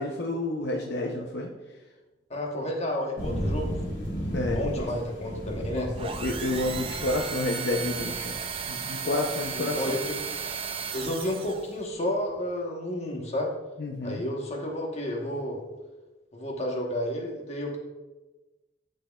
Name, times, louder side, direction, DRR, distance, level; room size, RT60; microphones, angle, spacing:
voice 1, 0.0-1.5 4.3-4.9 5.7-8.4 8.7-9.9 13.8-14.2, left 2 dB, 65° left, 0 dB, 0.6 m, -30 dB
voice 2, 2.3-3.8 4.5-5.9 9.5-10.2 10.9-13.5 14.0-15.6 16.3-17.8, left 1 dB, 35° left, 0 dB, 1.2 m, -31 dB
sound 1, 3.2-11.4, equal, 80° left, 1.8 m, -35 dB
sound 2, 6.0-11.8, right 6 dB, 30° right, 0.4 m, -35 dB
11.5 x 4.3 x 2.3 m, 1.2 s
head